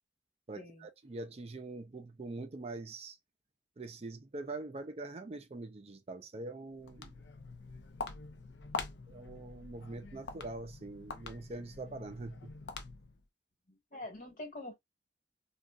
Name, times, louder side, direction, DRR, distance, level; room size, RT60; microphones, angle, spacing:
voice 1, 0.5-3.2 3.8-7.1 9.1-12.6, right 2 dB, 35° right, 0.4 m, -44 dB
Walk footsteps, 6.7-13.2, left 4 dB, 75° left, 0.6 m, -45 dB
voice 2, 13.7-14.7, left 2 dB, 50° left, 1.3 m, -45 dB
3.8 x 2.3 x 2.3 m
head